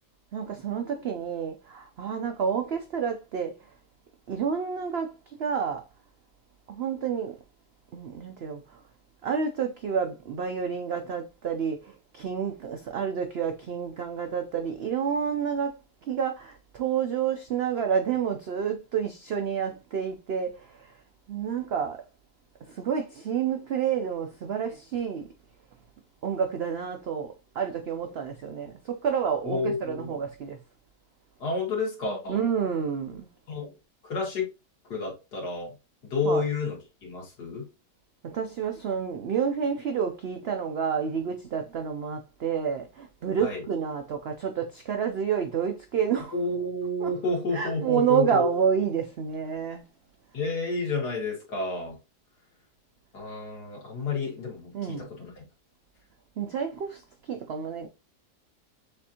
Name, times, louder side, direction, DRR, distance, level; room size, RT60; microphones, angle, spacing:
voice 1, 0.3-3.6 4.3-5.1 5.4-5.8 6.7-7.4 7.9-8.8 9.2-20.9 21.3-22.0 22.6-25.3 26.2-30.6 32.3-33.3 36.2-36.4 38.2-46.3 47.0-47.1 47.5-49.8 54.7-55.1 56.4-57.0 57.3-57.9, right 7 dB, 75° right, 0.5 m, -29 dB
voice 2, 29.4-30.1 31.4-32.4 33.5-33.7 34.0-34.5 34.9-35.7 36.0-37.6 43.4-43.6 46.3-48.5 50.3-52.0 53.1-55.4, left 3 dB, 80° left, 2.3 m, -30 dB
6.7 x 2.5 x 2.7 m
omnidirectional pair, 1.7 m